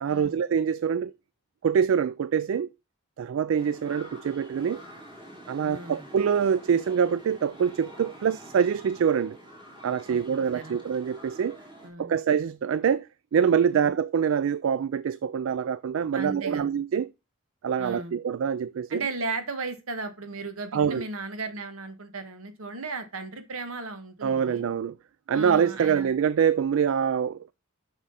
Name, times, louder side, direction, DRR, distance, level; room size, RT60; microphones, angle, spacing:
voice 1, 0.0-1.1 1.6-2.7 3.2-4.8 5.5-9.4 9.8-11.6 12.0-17.1 17.6-19.0 20.7-21.1 24.2-25.0 25.3-27.5, right 7 dB, 65° right, 0.3 m, -25 dB
sound 1, 3.6-11.9, equal, 25° right, 2.9 m, -47 dB
voice 2, 5.6-6.0 10.1-10.2 10.5-10.8 11.8-12.2 13.7-13.9 16.1-16.8 17.8-18.1 18.9-24.7 25.3-26.1, right 3 dB, 85° right, 1.5 m, -36 dB
7.5 x 6.2 x 4.1 m
head